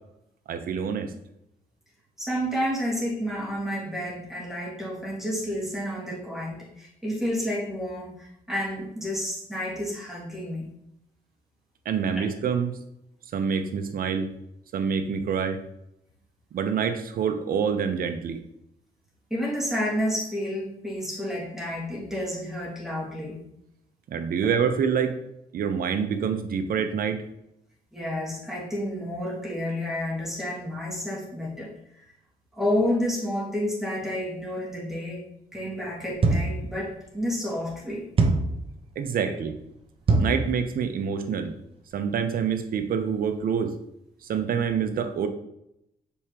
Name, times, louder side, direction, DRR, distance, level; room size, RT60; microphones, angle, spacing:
voice 1, 0.5-1.1 11.9-12.7 13.3-14.3 14.7-15.6 16.5-18.4 24.1-25.1 25.5-27.2 39.0-39.5 40.2-41.5 41.9-43.7 44.3-45.3, right 7 dB, 70° right, 7 dB, 0.8 m, -26 dB
voice 2, 2.2-10.7 19.3-23.4 27.9-32.0 32.5-35.2 35.5-38.1, equal, 5° right, -6 dB, 2.0 m, -30 dB
sound 1, 36.2-36.7 38.2-38.6 40.1-40.5, right 3 dB, 35° right, 0.9 m, -21 dB
7.0 x 4.7 x 2.9 m, 0.79 s
cardioid pair, 110°, 15 cm